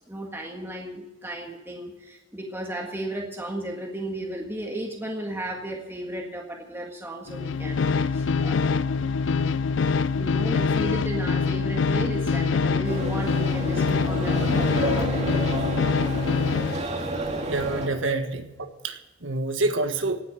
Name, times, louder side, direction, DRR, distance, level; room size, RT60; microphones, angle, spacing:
voice 1, 0.1-9.3 10.1-15.3, right 1 dB, 10° right, 0 dB, 1.8 m, -34 dB
sound 1, 7.3-16.8, left 5 dB, 70° left, 0.4 m, -24 dB
sound 2, 12.8-17.9, right 1 dB, 35° right, 2.2 m, -30 dB
voice 2, 17.5-18.4 18.8-20.2, right 2 dB, 75° right, 7 dB, 1.5 m, -27 dB
18.0 x 8.1 x 8.8 m, 1.1 s
head